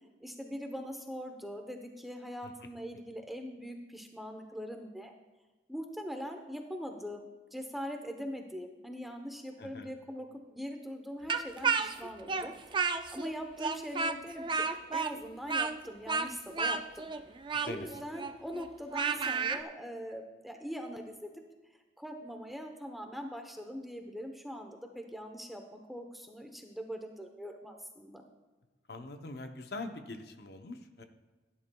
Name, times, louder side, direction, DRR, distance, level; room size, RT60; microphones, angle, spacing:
voice 1, 0.2-5.1 5.7-7.2 7.5-12.5 13.1-14.7 14.9-17.1 17.6-21.1 22.0-28.2, equal, ahead, 4 dB, 0.8 m, -42 dB
voice 2, 9.6-9.9 17.5-17.9 28.9-31.0, left 2 dB, 55° left, 6 dB, 0.8 m, -43 dB
Speech, 11.3-13.3 13.6-19.6, right 5 dB, 25° right, 0.4 m, -32 dB
16.5 x 10.5 x 2.3 m, 1.2 s
head